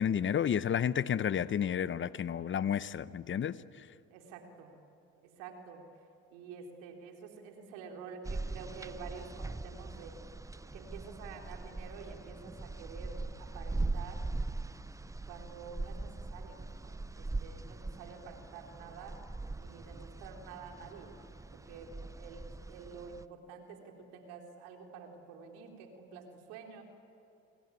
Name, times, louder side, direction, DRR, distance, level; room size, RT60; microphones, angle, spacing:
voice 1, 0.0-3.5, left 8 dB, 40° left, 16 dB, 0.9 m, -31 dB
voice 2, 4.1-4.8 5.2-5.8 6.3-10.2 10.7-14.3 15.3-19.2 19.6-21.1 21.5-26.8, right 5 dB, 80° right, 2 dB, 3.8 m, -49 dB
sound 1, 8.2-23.2, right 2 dB, 10° right, 0.7 m, -41 dB
27.0 x 21.5 x 9.6 m, 2.6 s
supercardioid pair, 70°, 31 cm